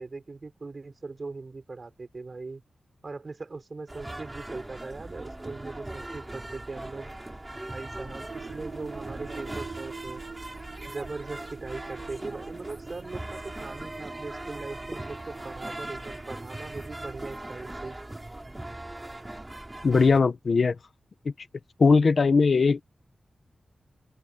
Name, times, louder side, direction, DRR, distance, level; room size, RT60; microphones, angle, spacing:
voice 1, 0.0-2.6 3.0-7.1 7.7-10.2 10.9-18.0 18.4-18.5, right 3 dB, 35° right, 5.7 m, -40 dB
sound 1, 3.9-20.2, right 1 dB, 15° right, 2.7 m, -40 dB
sound 2, 8.3-17.2, right 5 dB, 75° right, 1.7 m, -45 dB
voice 2, 19.8-20.8 21.2-21.3 21.8-22.8, left 4 dB, 50° left, 0.9 m, -20 dB
wide cardioid pair, 155°, 0 cm